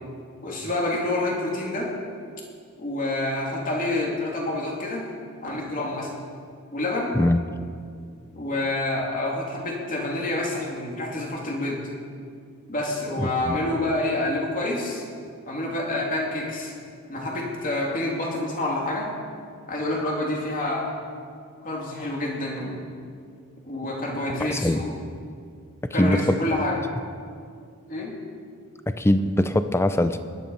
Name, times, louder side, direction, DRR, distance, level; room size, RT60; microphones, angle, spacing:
voice 1, 0.4-1.9 2.8-5.0 5.4-6.1 6.7-7.2 8.3-11.8 12.7-15.0 15.5-16.7 17.1-19.1 19.7-21.0 21.6-22.8 23.6-24.9 25.9-26.8 27.9-28.1, left 2 dB, 40° left, -2 dB, 2.8 m, -27 dB
voice 2, 13.2-13.5 24.5-24.8 26.0-26.4 28.9-30.2, left 1 dB, 10° left, 10 dB, 0.5 m, -22 dB
19.0 x 10.5 x 5.5 m, 2.3 s
head